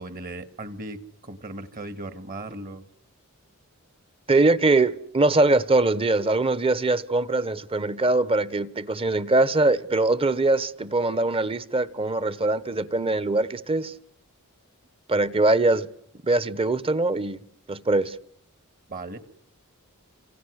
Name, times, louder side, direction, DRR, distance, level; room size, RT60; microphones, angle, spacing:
voice 1, 0.0-2.9 18.9-19.2, right 2 dB, 40° right, 2.0 m, -37 dB
voice 2, 4.3-13.9 15.1-15.9 16.2-17.4 17.7-18.2, right 2 dB, 25° right, 1.1 m, -22 dB
29.5 x 27.0 x 6.5 m
head